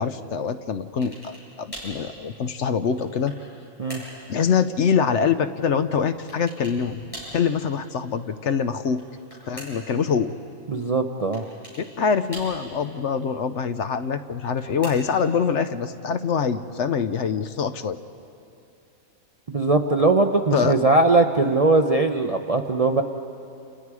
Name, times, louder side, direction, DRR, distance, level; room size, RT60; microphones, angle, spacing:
voice 1, 0.0-3.3 4.3-9.0 9.5-10.3 12.0-18.0 20.5-20.9, left 6 dB, 60° left, 10 dB, 0.9 m, -24 dB
sound 1, 1.0-1.5 1.7-2.0 2.6-3.5 3.9-4.2 6.3-6.8 7.1-7.4 8.8-9.9 11.3-11.9 12.3-12.9 14.3-15.3, equal, 20° left, 7.8 m, -41 dB
voice 2, 10.7-11.4 19.5-23.0, right 3 dB, 40° right, 5 dB, 0.5 m, -20 dB
29.0 x 29.0 x 4.8 m, 2.6 s
omnidirectional pair, 1.5 m